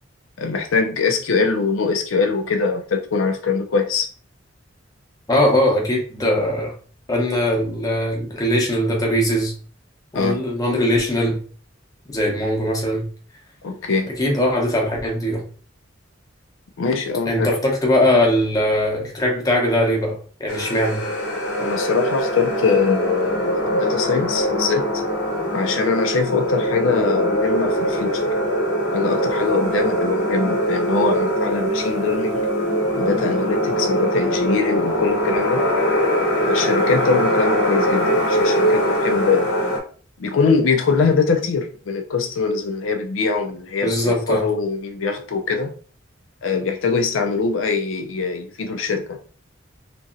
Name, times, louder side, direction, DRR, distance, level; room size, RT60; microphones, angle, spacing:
voice 1, 0.4-4.1 10.1-10.4 13.6-14.1 16.8-17.5 21.6-24.9 25.5-28.3 28.9-32.5 33.0-35.7 36.5-39.6 40.2-45.7 46.4-49.2, left 4 dB, 85° left, 0.4 m, -22 dB
voice 2, 5.3-6.7 7.1-9.5 10.1-11.4 12.1-13.1 14.1-15.4 17.3-21.0 43.8-44.4, left 1 dB, 20° left, 0.8 m, -20 dB
sound 1, 20.5-39.8, equal, 65° left, 0.8 m, -22 dB
2.9 x 2.6 x 2.4 m
head